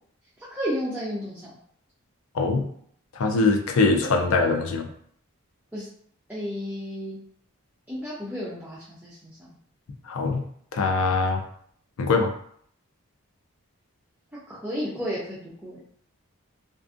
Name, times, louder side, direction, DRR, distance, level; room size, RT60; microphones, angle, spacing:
voice 1, 0.5-1.5 5.7-5.9 6.3-7.2 7.9-9.5 14.5-15.8, equal, 5° right, -9 dB, 0.4 m, -32 dB
voice 2, 2.3-2.7 3.1-4.9 10.0-10.4 10.7-11.4 12.0-12.3, left 3 dB, 75° left, 4 dB, 0.4 m, -22 dB
2.5 x 2.4 x 2.4 m, 0.64 s
head